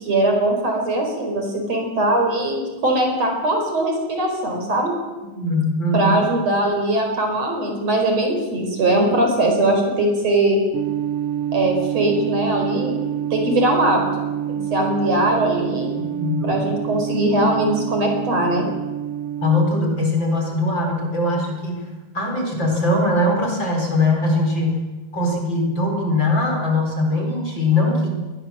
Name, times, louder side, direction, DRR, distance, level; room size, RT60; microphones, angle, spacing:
voice 1, 0.0-4.9 5.9-10.6 11.5-13.0 13.3-15.9 16.4-18.7, right 1 dB, 50° right, 3 dB, 5.9 m, -20 dB
voice 2, 5.3-6.1 16.2-16.6 19.4-21.9 22.1-24.8 25.1-28.1, left 2 dB, 35° left, 2 dB, 5.2 m, -21 dB
sound 1, 10.7-19.7, right 10 dB, 75° right, 1.3 m, -27 dB
25.5 x 21.0 x 7.6 m, 1.2 s
omnidirectional pair, 3.8 m